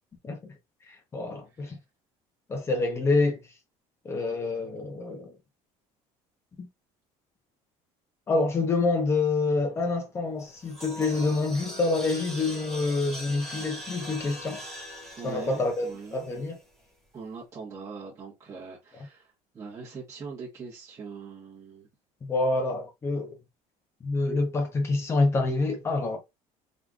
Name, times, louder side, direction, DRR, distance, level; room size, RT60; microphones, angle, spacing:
voice 1, 0.9-1.8 2.5-3.4 4.0-5.3 6.6-6.7 8.3-14.6 15.2-16.6 22.2-23.4 24.0-26.2, left 3 dB, 20° left, 1.0 m, -27 dB
sound 1, 10.4-16.7, equal, 5° left, 1.7 m, -41 dB
voice 2, 15.2-16.3 17.1-21.9, right 5 dB, 25° right, 1.3 m, -42 dB
3.8 x 3.3 x 2.4 m
cardioid pair, 165°, 13 cm